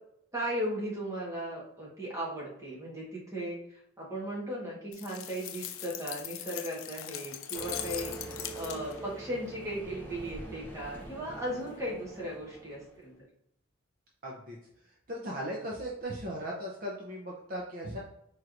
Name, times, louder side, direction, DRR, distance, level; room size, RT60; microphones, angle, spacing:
voice 1, 0.3-13.1, equal, 15° right, -4 dB, 1.2 m, -37 dB
sound 1, 4.9-9.1, left 11 dB, 85° left, 0.4 m, -41 dB
sound 2, 7.5-13.1, right 2 dB, 10° left, 0.6 m, -44 dB
voice 2, 14.2-14.6 15.1-18.0, equal, 45° right, -3 dB, 0.7 m, -37 dB
4.4 x 3.1 x 2.5 m, 0.75 s
head